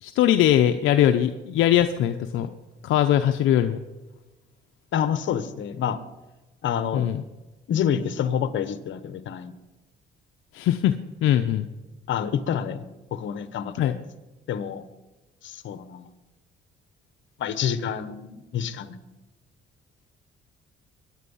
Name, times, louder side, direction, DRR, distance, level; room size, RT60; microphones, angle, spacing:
voice 1, 0.0-2.5 2.8-3.8 6.9-7.2 10.5-10.9 11.2-11.7 13.8-13.9, left 11 dB, 90° left, 7 dB, 0.7 m, -21 dB
voice 2, 4.9-6.0 6.6-7.1 7.7-9.5 12.1-12.8 13.1-14.0 14.5-14.8 15.4-16.1 17.4-19.0, left 8 dB, 70° left, 13 dB, 1.2 m, -28 dB
23.0 x 10.0 x 5.6 m, 1.1 s
cardioid pair, 90°, 20 cm